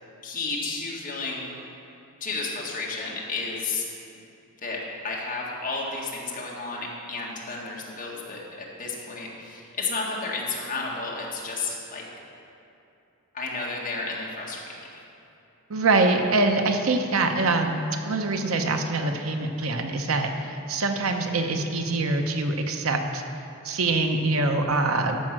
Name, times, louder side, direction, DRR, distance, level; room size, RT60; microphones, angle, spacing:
voice 1, 0.2-1.5 2.2-3.8 4.6-12.0 13.3-14.6 14.9-15.0, left 3 dB, 40° left, -3 dB, 1.7 m, -32 dB
voice 2, 15.7-23.2 23.6-25.2, right 3 dB, 70° right, 5 dB, 0.8 m, -24 dB
14.0 x 5.5 x 6.1 m, 2.7 s
head